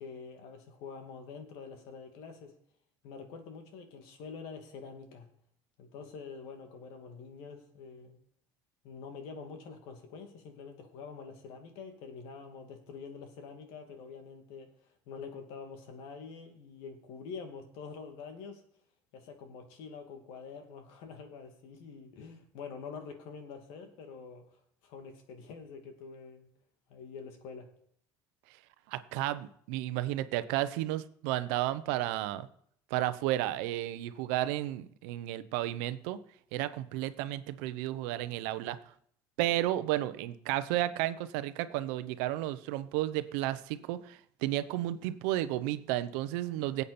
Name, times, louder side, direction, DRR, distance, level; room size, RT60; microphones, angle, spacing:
voice 1, 0.0-2.5 3.0-5.3 5.8-8.2 8.8-14.7 15.1-18.6 19.1-24.4 24.8-26.5 26.9-27.7, left 5 dB, 80° left, 5 dB, 2.5 m, -46 dB
voice 2, 28.9-32.5 32.9-36.2 36.5-38.8 39.4-46.8, right 14 dB, 85° right, 12 dB, 0.8 m, -32 dB
19.0 x 8.3 x 4.3 m, 0.65 s
supercardioid pair, 100°, 9 cm